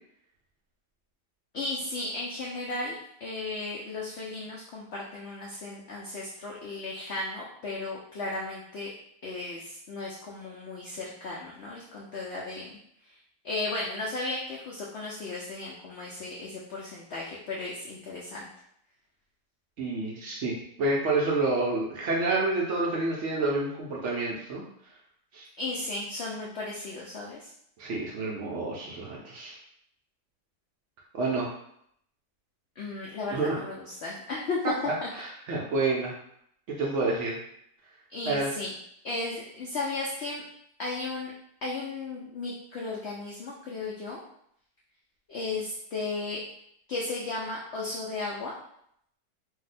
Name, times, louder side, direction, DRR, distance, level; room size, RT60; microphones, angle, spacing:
voice 1, 1.5-8.9 9.2-12.7 13.0-13.1 13.4-18.5 25.6-27.5 32.8-34.7 35.0-35.1 38.1-38.7 39.0-40.4 40.8-41.3 41.6-44.2 45.3-46.4 46.9-48.6, left 3 dB, 90° left, -3 dB, 0.5 m, -35 dB
voice 2, 19.8-20.5 20.8-24.6 25.3-25.5 27.8-29.6 31.1-31.5 33.3-33.6 34.9-36.1 36.7-37.4 38.3-38.5, right 2 dB, 70° right, -3 dB, 0.7 m, -28 dB
2.7 x 2.1 x 4.0 m, 0.72 s
omnidirectional pair, 1.7 m